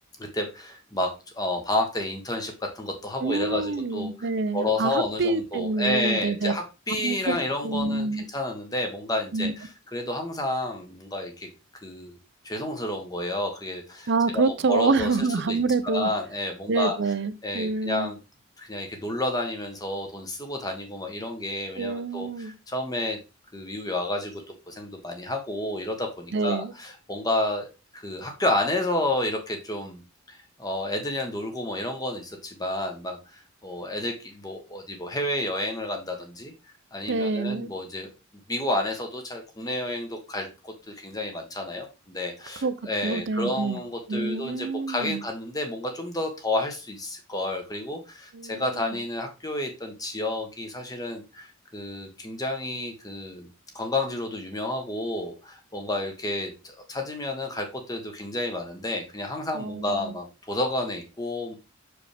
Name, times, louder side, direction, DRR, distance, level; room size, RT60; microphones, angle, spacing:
voice 1, 0.2-4.3 4.5-11.5 11.8-12.2 12.4-14.1 14.3-15.1 15.5-15.6 15.8-16.9 17.4-18.2 18.6-23.2 23.5-24.4 24.7-30.0 30.3-36.5 36.9-38.1 38.5-53.5 53.7-61.6, left 1 dB, 15° left, 1.1 m, -30 dB
voice 2, 3.2-6.5 6.9-7.4 7.6-8.2 9.3-9.5 14.1-16.1 16.7-18.1 21.7-22.5 26.3-26.7 37.1-37.7 42.6-42.7 43.0-43.8 44.1-45.2 48.3-49.0 59.5-60.1, right 3 dB, 50° right, 0.5 m, -27 dB
6.3 x 4.9 x 3.4 m
head